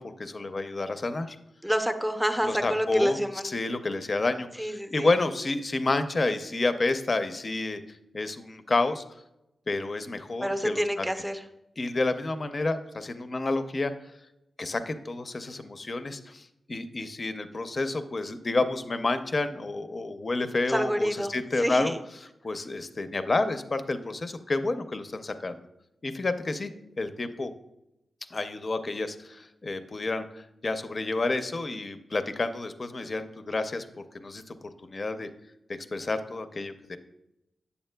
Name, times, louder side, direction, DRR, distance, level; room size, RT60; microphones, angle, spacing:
voice 1, 0.0-1.4 2.4-3.2 3.4-9.0 9.7-11.1 11.8-14.1 14.6-21.9 22.4-25.6 26.0-26.7 27.0-27.5 28.3-34.6 34.8-35.3 35.9-37.0, left 2 dB, 45° left, 10 dB, 0.5 m, -30 dB
voice 2, 1.6-3.5 4.6-5.1 10.4-11.4 20.7-22.0, equal, 5° right, 6 dB, 0.6 m, -28 dB
8.0 x 6.9 x 2.2 m, 0.88 s
wide cardioid pair, 80°, 0 cm